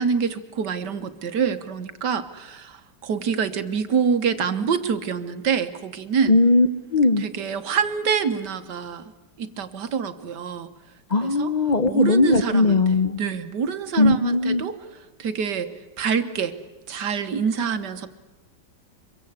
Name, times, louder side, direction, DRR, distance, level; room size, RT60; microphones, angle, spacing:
voice 1, 0.0-6.4 7.2-9.0 9.4-10.7 11.2-11.5 11.8-12.8 13.2-14.8 15.2-15.7 16.0-16.5 16.9-18.1, right 6 dB, 70° right, 9 dB, 1.7 m, -26 dB
voice 2, 6.3-7.2 11.1-13.2 14.0-14.6, left 3 dB, 45° left, 8 dB, 0.5 m, -19 dB
24.5 x 22.5 x 8.2 m, 1.1 s
omnidirectional pair, 2.0 m